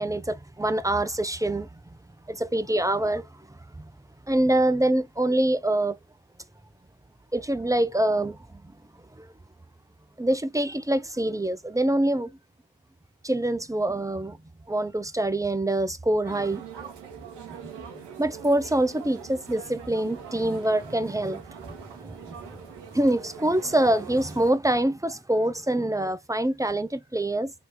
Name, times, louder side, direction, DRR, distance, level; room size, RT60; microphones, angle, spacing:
voice 1, 0.0-1.8 2.3-3.9 4.3-6.0 7.3-8.4 9.2-9.3 10.2-12.3 13.2-14.4 14.7-16.6 17.6-17.7 18.2-21.4 22.0-22.6 22.9-27.5, right 1 dB, 10° right, 0.6 m, -25 dB
sound 1, 16.2-24.5, right 7 dB, 75° right, 1.6 m, -43 dB
3.9 x 2.7 x 3.6 m
hypercardioid pair, 45°, 43 cm